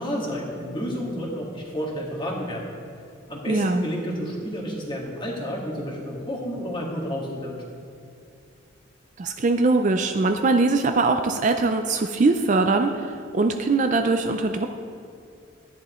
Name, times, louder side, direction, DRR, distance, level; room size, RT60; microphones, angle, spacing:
voice 1, 0.0-2.6 3.3-7.6, equal, 25° left, -3 dB, 1.8 m, -30 dB
voice 2, 3.5-3.8 9.2-14.7, right 3 dB, 35° right, 6 dB, 0.4 m, -22 dB
13.5 x 10.5 x 3.1 m, 2.5 s
head